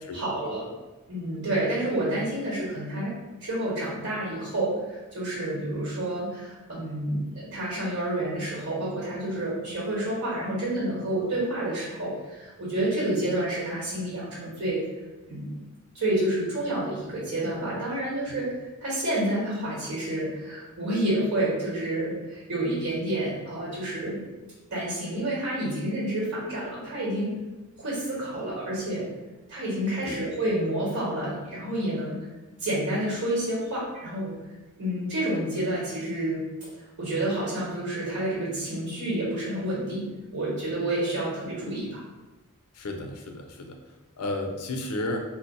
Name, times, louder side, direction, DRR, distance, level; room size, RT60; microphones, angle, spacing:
voice 1, 0.1-0.7 1.1-14.8 15.3-15.6 15.9-18.5 18.8-24.2 24.7-27.3 27.8-29.1 29.5-32.2 32.6-34.3 34.8-36.4 37.0-42.0, right 1 dB, 65° right, -7 dB, 1.2 m, -29 dB
voice 2, 42.7-43.8 44.2-45.2, left 1 dB, 85° left, 3 dB, 0.5 m, -32 dB
2.8 x 2.1 x 4.0 m, 1.1 s
head